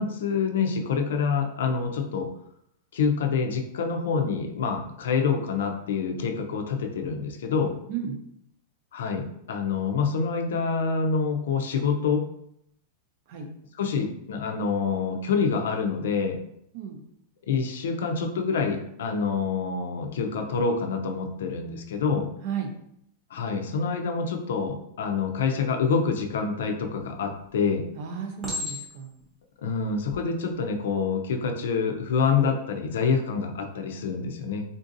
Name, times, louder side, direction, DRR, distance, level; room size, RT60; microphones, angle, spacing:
voice 1, 0.0-2.3 2.9-7.7 8.9-12.2 13.8-16.4 17.5-22.3 23.3-27.8 29.6-34.6, left 5 dB, 80° left, 4 dB, 0.5 m, -26 dB
voice 2, 7.9-8.2 13.3-13.5 16.7-17.0 22.4-22.7 27.9-29.1, right 7 dB, 40° right, 3 dB, 0.5 m, -33 dB
Chink clink, 26.9-27.4 28.4-29.2 29.9-30.2, left 2 dB, 15° right, 0.8 m, -35 dB
3.7 x 2.6 x 2.6 m, 0.73 s
supercardioid pair, 175°, 0 cm